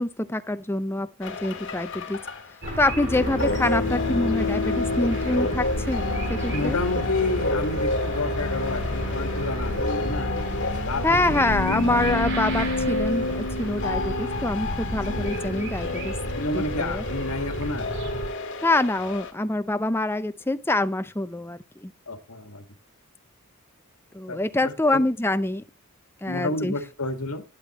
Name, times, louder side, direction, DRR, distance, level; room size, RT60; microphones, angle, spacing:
voice 1, 0.0-2.2 2.8-6.8 11.0-16.1 16.5-17.0 18.6-21.9 24.1-25.6 26.2-26.7, left 2 dB, 10° left, 0.5 m, -25 dB
sound 1, 1.2-19.3, left 2 dB, 55° left, 1.9 m, -29 dB
sound 2, 2.6-18.3, right 1 dB, 55° right, 3.1 m, -33 dB
voice 2, 6.5-10.3 10.7-11.2 11.7-11.8 16.3-17.9 22.1-22.6 24.3-25.0 26.3-27.4, left 2 dB, 85° left, 1.7 m, -30 dB
11.5 x 10.5 x 3.0 m
head